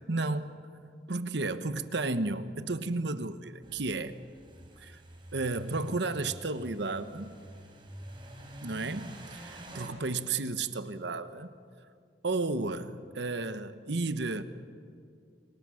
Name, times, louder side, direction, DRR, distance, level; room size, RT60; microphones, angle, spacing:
voice 1, 0.1-0.6 1.1-4.2 4.8-5.0 5.3-7.3 8.6-11.5 12.2-14.4, right 3 dB, 70° right, 11 dB, 1.1 m, -33 dB
sound 1, 3.6-9.9, right 1 dB, 25° right, 4.5 m, -48 dB
29.5 x 24.5 x 6.4 m, 2.3 s
head